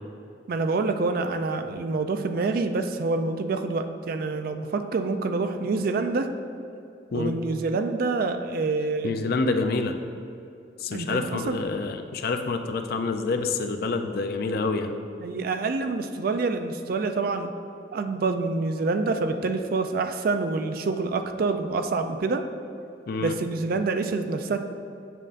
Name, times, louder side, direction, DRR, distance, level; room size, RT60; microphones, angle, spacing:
voice 1, 0.5-6.3 7.1-9.2 10.9-11.6 15.2-17.5 17.9-22.4 23.2-24.6, right 3 dB, 50° right, 7 dB, 0.4 m, -27 dB
voice 2, 9.0-10.0 10.8-15.0 23.1-23.3, left 3 dB, 55° left, 6 dB, 0.4 m, -27 dB
7.4 x 6.4 x 2.5 m, 2.6 s
head